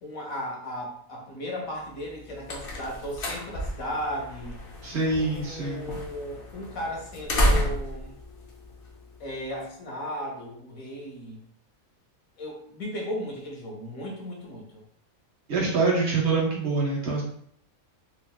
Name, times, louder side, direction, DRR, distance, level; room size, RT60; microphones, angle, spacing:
voice 1, 0.0-4.7 5.2-8.2 9.2-11.4 12.4-14.8, equal, 80° left, -1 dB, 1.3 m, -36 dB
sound 1, 2.0-9.4, equal, 55° left, 0.7 m, -31 dB
voice 2, 4.8-5.8 15.5-17.2, right 3 dB, 55° right, -3 dB, 0.9 m, -25 dB
3.1 x 2.3 x 2.3 m, 0.66 s
omnidirectional pair, 1.5 m